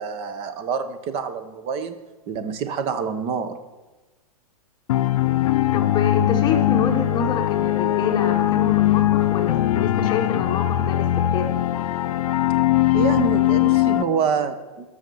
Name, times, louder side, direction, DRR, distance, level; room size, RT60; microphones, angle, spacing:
voice 1, 0.0-2.0 2.3-3.6 12.9-14.9, right 6 dB, 30° right, 10 dB, 0.9 m, -26 dB
sound 1, 4.9-14.0, left 14 dB, 70° left, 0.7 m, -20 dB
voice 2, 5.7-11.5, left 5 dB, 25° left, 3 dB, 1.1 m, -27 dB
12.5 x 6.5 x 6.9 m, 1.2 s
hypercardioid pair, 150°, 19 cm